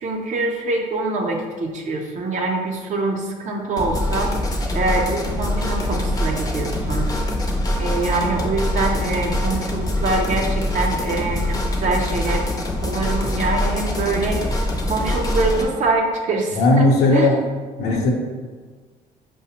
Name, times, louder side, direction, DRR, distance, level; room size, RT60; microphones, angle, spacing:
voice 1, 0.0-4.3 4.7-7.1 7.8-12.4 12.8-17.3, right 3 dB, 45° right, 2 dB, 0.6 m, -24 dB
sound 1, 3.8-15.6, left 1 dB, 20° left, 0.5 m, -24 dB
voice 2, 16.5-17.4 17.8-18.1, left 2 dB, 80° left, 0 dB, 0.7 m, -16 dB
4.7 x 2.0 x 2.8 m, 1.5 s
cardioid pair, 110°, 17 cm